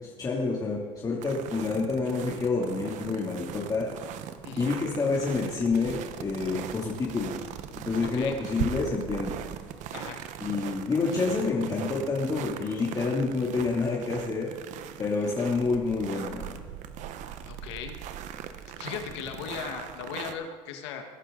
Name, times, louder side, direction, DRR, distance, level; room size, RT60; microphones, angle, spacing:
voice 1, 0.0-3.9 4.6-7.4 7.8-9.4 10.4-14.5 15.0-16.6, left 4 dB, 25° left, -4 dB, 2.7 m, -28 dB
sound 1, 1.2-20.3, right 9 dB, 60° right, 1.1 m, -39 dB
voice 2, 8.0-8.3 9.9-10.2 17.5-17.9 18.8-21.0, left 7 dB, 85° left, 5 dB, 1.7 m, -38 dB
21.0 x 11.5 x 3.9 m, 1.5 s
supercardioid pair, 90°, 14 cm